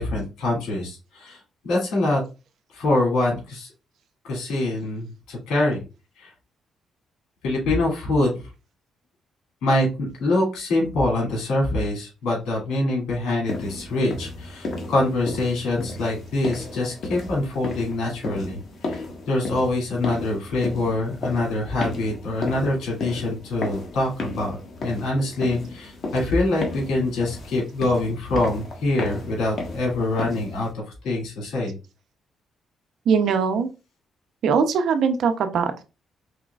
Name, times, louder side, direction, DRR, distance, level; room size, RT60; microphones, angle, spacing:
voice 1, 0.0-2.2 2.7-3.7 4.2-5.8 6.2-6.3 7.4-8.5 9.6-24.6 24.8-31.8, left 2 dB, 80° left, -3 dB, 2.7 m, -25 dB
sound 1, 13.5-30.7, left 2 dB, 50° left, 1.4 m, -34 dB
voice 2, 33.1-33.7 34.4-35.8, right 6 dB, 70° right, 8 dB, 0.8 m, -21 dB
4.9 x 3.7 x 2.5 m, 0.29 s
cardioid pair, 90°, 0 cm